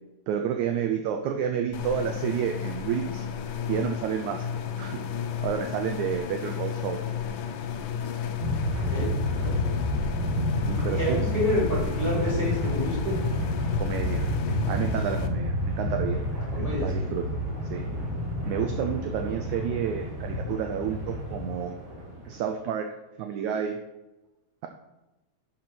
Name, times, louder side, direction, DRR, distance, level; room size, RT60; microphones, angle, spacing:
voice 1, 0.3-3.3 3.7-4.5 4.8-5.0 5.4-7.0 10.7-11.2 13.8-14.3 14.7-17.4 17.7-17.9 18.4-21.8 22.3-22.9 23.2-23.8, right 8 dB, 85° right, 5 dB, 1.7 m, -30 dB
sound 1, 1.7-15.3, left 8 dB, 75° left, 2.2 m, -33 dB
sound 2, 8.4-22.4, left 1 dB, 40° right, 2.6 m, -30 dB
voice 2, 8.9-9.6 10.9-13.2 16.5-17.0, left 1 dB, 15° left, -6 dB, 2.7 m, -28 dB
11.0 x 5.9 x 4.5 m, 1.0 s
omnidirectional pair, 4.0 m